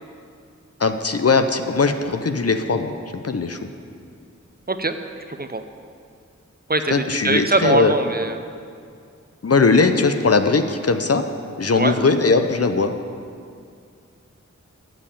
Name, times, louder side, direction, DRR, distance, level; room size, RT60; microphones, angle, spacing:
voice 1, 0.8-2.9 3.2-3.6 6.9-7.9 9.4-11.2 11.6-12.9, left 4 dB, 55° left, 7 dB, 0.6 m, -19 dB
voice 2, 5.3-5.6 6.7-8.4 11.8-12.0, right 2 dB, 35° right, 8 dB, 0.6 m, -22 dB
7.6 x 7.2 x 8.5 m, 2.3 s
wide cardioid pair, 40°, 29 cm